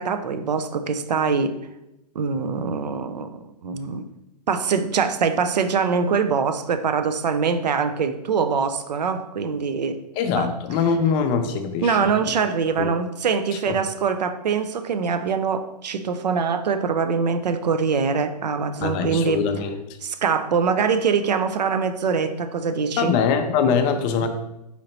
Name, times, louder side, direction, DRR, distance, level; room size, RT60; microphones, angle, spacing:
voice 1, 0.0-1.5 2.2-4.1 4.5-10.0 10.3-10.5 11.8-19.5 20.0-23.2, right 5 dB, 80° right, 10 dB, 0.5 m, -23 dB
voice 2, 10.2-12.0 12.8-12.9 18.8-19.8 23.0-24.3, left 6 dB, 25° left, 7 dB, 0.4 m, -22 dB
4.3 x 2.8 x 4.1 m, 0.90 s
hypercardioid pair, 125°, 21 cm